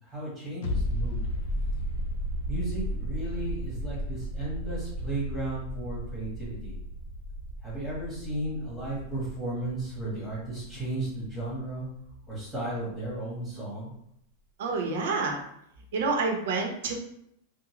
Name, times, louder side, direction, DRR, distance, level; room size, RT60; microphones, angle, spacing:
voice 1, 0.0-1.2 2.5-6.8 7.6-11.8 12.3-13.9, right 1 dB, ahead, -8 dB, 1.4 m, -34 dB
sound 1, 0.6-12.0 12.2-12.3, equal, 50° left, 0.4 m, -34 dB
voice 2, 14.6-15.4 15.9-16.9, right 4 dB, 70° right, 1 dB, 0.7 m, -28 dB
3.7 x 2.1 x 3.0 m, 0.74 s
supercardioid pair, 170°, 0 cm